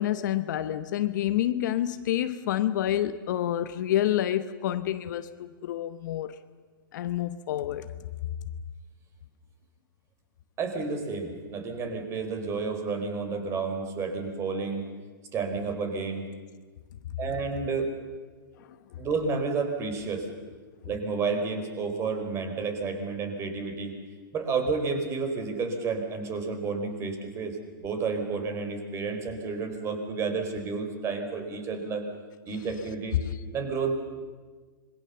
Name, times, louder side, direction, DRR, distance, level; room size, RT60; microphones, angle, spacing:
voice 1, 0.0-6.3 6.9-7.9, left 12 dB, 55° left, 1.0 m, -28 dB
voice 2, 10.6-14.9 15.3-16.3 17.2-17.9 19.0-20.3 20.8-23.9 24.3-32.0 32.5-33.2 33.5-33.9, right 4 dB, 25° right, 4.3 m, -31 dB
26.0 x 23.0 x 6.9 m
hypercardioid pair, 130°, 12 cm